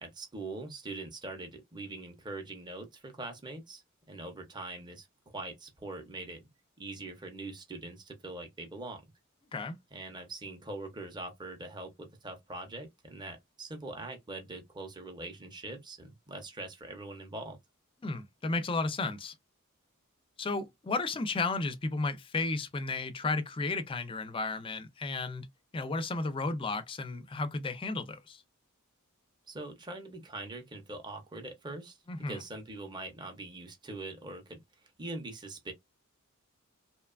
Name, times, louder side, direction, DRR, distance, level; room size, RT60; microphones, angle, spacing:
voice 1, 0.0-3.8 4.1-6.5 6.8-9.0 9.9-17.6 29.5-34.6 35.0-35.7, right 2 dB, 20° right, 0.6 m, -42 dB
voice 2, 18.0-19.3 20.4-25.5 25.7-28.4 32.1-32.4, left 3 dB, 25° left, 0.4 m, -33 dB
2.8 x 2.2 x 2.2 m
head